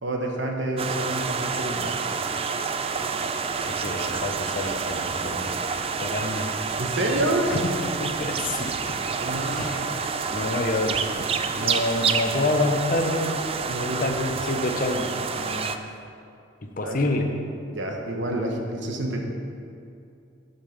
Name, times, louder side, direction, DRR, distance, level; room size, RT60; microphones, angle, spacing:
voice 1, 0.0-2.0 6.8-7.5 9.2-10.0 13.7-14.2 16.8-17.0 17.7-19.2, right 1 dB, 65° right, 1 dB, 1.2 m, -28 dB
sound 1, 0.8-15.8, right 5 dB, 30° right, 0.4 m, -28 dB
voice 2, 3.7-5.5 6.0-6.7 7.5-7.7 8.0-8.7 9.5-9.9 10.3-11.1 11.5-13.4 13.8-15.1 15.4-15.8 16.6-17.3, left 2 dB, 45° left, 3 dB, 0.9 m, -27 dB
8.5 x 5.5 x 7.3 m, 2.6 s
head